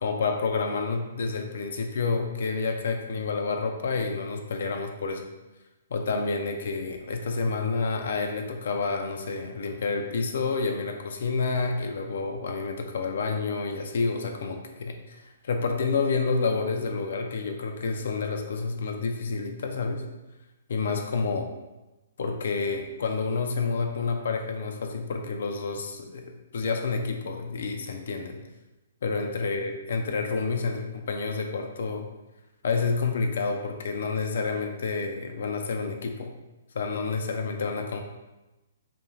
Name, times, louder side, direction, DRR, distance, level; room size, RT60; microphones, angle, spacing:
voice 1, 0.0-5.3 5.9-20.0 20.7-21.4 22.2-28.4 29.0-32.1 32.6-36.3 36.7-38.0, left 4 dB, 70° left, 4 dB, 0.3 m, -29 dB
2.5 x 2.2 x 3.1 m, 1.0 s
hypercardioid pair, 160°, 0 cm